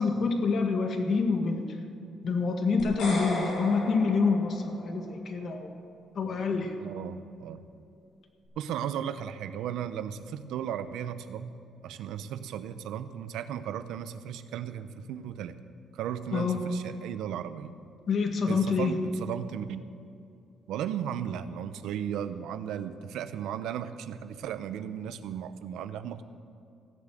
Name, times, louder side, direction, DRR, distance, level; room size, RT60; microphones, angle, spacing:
voice 1, 0.0-1.7 2.2-5.7 6.1-6.7 16.3-16.6 18.1-18.9, left 4 dB, 55° left, 5 dB, 1.7 m, -27 dB
sound 1, 2.8-5.1, left 2 dB, 85° left, 4.2 m, -35 dB
voice 2, 6.8-7.6 8.6-11.6 11.8-15.6 15.9-17.7 18.5-19.8 20.7-26.2, right 9 dB, 85° right, 12 dB, 0.7 m, -35 dB
16.5 x 7.7 x 7.5 m, 2.6 s
cardioid pair, 90°, 0 cm